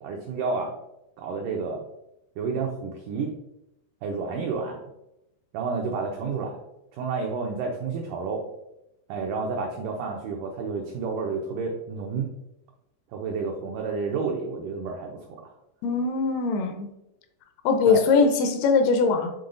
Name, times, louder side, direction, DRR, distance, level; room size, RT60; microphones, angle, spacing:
voice 1, 0.0-0.7 1.2-1.8 2.4-3.3 4.0-4.8 5.5-6.6 6.9-8.4 9.1-12.3 13.1-15.5 17.9-18.0, right 4 dB, 90° right, 1 dB, 1.8 m, -30 dB
voice 2, 15.8-16.9 17.6-19.3, left 4 dB, 80° left, 6 dB, 2.6 m, -21 dB
8.1 x 3.9 x 3.8 m, 0.87 s
omnidirectional pair, 4.7 m